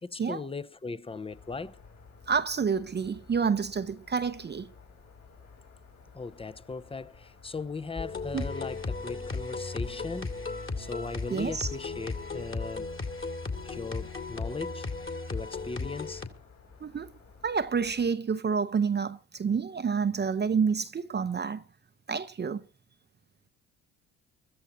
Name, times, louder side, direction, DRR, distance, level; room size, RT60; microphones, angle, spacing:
voice 1, 0.0-1.8 6.1-10.4 10.8-13.0 13.6-14.9 15.3-16.2, left 4 dB, 15° left, 0.7 m, -38 dB
sound 1, 1.3-18.1, left 5 dB, 55° left, 5.4 m, -54 dB
voice 2, 2.3-4.7 8.3-8.5 11.3-11.7 16.8-17.1 17.4-21.6 22.1-22.6, right 6 dB, 30° right, 0.7 m, -28 dB
sound 2, 8.0-16.3, left 3 dB, 35° left, 2.6 m, -35 dB
24.5 x 14.0 x 2.7 m
supercardioid pair, 65°, 34 cm